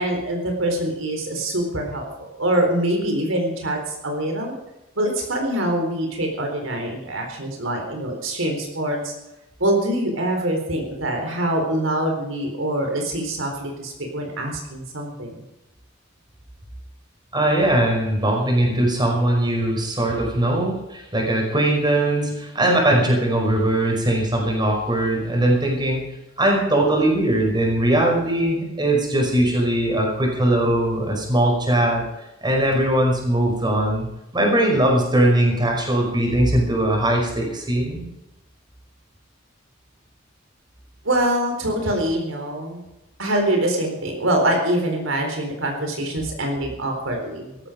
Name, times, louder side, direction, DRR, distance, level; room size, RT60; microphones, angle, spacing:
voice 1, 0.0-4.6 5.0-9.1 9.6-15.4 41.0-42.8 43.2-47.7, right 1 dB, 85° right, 2 dB, 4.2 m, -24 dB
voice 2, 17.3-26.0 26.4-32.0 32.4-34.1 34.3-38.0, right 1 dB, 25° right, 0 dB, 5.4 m, -20 dB
16.5 x 14.0 x 5.2 m, 0.93 s
head